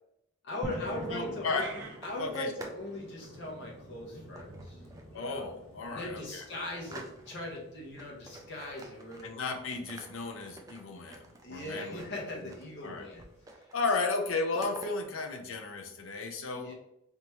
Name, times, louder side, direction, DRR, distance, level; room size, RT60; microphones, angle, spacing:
voice 1, 0.4-1.7 2.0-4.8 5.1-5.5 5.8-9.3 11.4-13.6 16.6-16.7, left 1 dB, 55° left, -2 dB, 1.2 m, -40 dB
sound 1, 0.6-13.5, equal, 5° left, 1.3 m, -49 dB
sound 2, 0.9-2.9 3.2-3.6 4.4-5.2 5.6-5.7 6.0-7.6 8.0-9.5 9.7-12.9 13.2-13.8 14.0-14.9, right 2 dB, 15° right, 0.4 m, -50 dB
voice 2, 1.1-1.7 2.2-2.5 5.1-6.4 9.2-12.0 12.4-12.5 12.8-13.1 13.7-16.7, left 3 dB, 70° left, 4 dB, 0.7 m, -34 dB
sound 3, 1.5-2.0, right 3 dB, 55° right, 0.8 m, -43 dB
4.0 x 3.5 x 3.0 m, 0.81 s
head